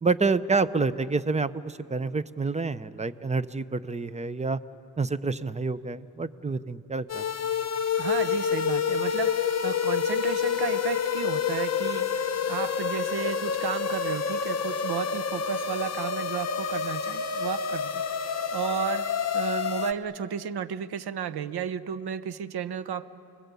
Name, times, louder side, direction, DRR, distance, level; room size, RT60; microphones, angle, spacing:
voice 1, 0.0-4.6 5.0-7.2, right 4 dB, 15° right, 14 dB, 0.7 m, -28 dB
sound 1, 7.1-19.9, left 7 dB, 40° left, 0.8 m, -28 dB
voice 2, 8.0-17.9 18.3-19.1 19.3-23.1, right 8 dB, 75° right, 14 dB, 1.0 m, -33 dB
30.0 x 20.0 x 8.3 m, 2.6 s
wide cardioid pair, 120°, 39 cm